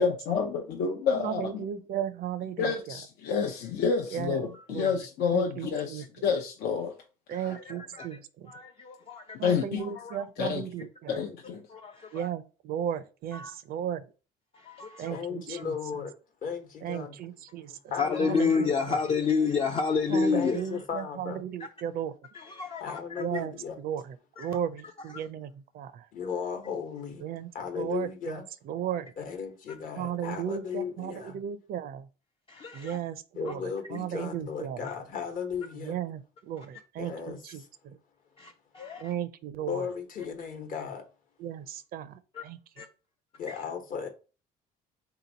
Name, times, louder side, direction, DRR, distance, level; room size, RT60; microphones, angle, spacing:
voice 1, 0.0-1.6 2.6-7.0 7.3-7.6 9.4-9.9 10.4-10.6 11.1-11.6, left 6 dB, 75° left, 0.6 m, -29 dB
voice 2, 1.2-3.0 4.1-4.4 4.7-4.9 5.3-6.0 7.3-8.2 9.4-11.2 12.1-14.0 15.0-15.7 16.8-17.8 18.2-18.7 20.1-22.1 23.2-23.5 23.8-25.5 25.7-26.1 27.2-29.1 30.0-32.1 32.7-33.6 33.9-34.8 35.8-38.0 39.0-39.9 41.4-42.2 42.4-42.6, right 10 dB, 60° right, 0.5 m, -35 dB
voice 3, 7.4-10.2 11.1-11.2 11.7-12.3 13.3-13.6 14.5-15.2 15.6-15.7 18.0-20.9 21.6-21.7 22.3-23.2 24.4-25.3 29.7-29.8 32.5-33.0 33.4-33.5 34.8-35.0 36.6-36.7 38.4-39.1 42.3-42.4 42.8-42.9 43.5-43.6, left 5 dB, 35° left, 0.4 m, -31 dB
voice 4, 15.1-16.1 16.4-17.2 17.7-18.4 20.3-21.4 22.8-23.7 26.1-27.2 27.5-28.4 29.2-31.4 33.3-35.9 37.0-37.7 39.6-41.0 43.4-44.1, left 6 dB, 55° left, 1.0 m, -36 dB
3.5 x 2.9 x 3.9 m
cardioid pair, 110°, 17 cm